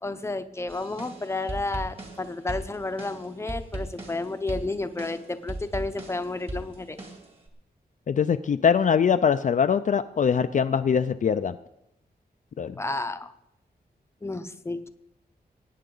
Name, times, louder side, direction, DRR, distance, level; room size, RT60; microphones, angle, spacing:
voice 1, 0.0-7.0 12.8-13.3 14.2-14.9, left 2 dB, 15° left, 10 dB, 0.6 m, -31 dB
sound 1, 0.7-7.5, right 1 dB, 35° right, 2.2 m, -38 dB
voice 2, 8.1-11.6 12.6-12.7, left 7 dB, 50° left, 9 dB, 0.4 m, -22 dB
20.5 x 9.3 x 3.8 m, 0.85 s
wide cardioid pair, 155°, 16 cm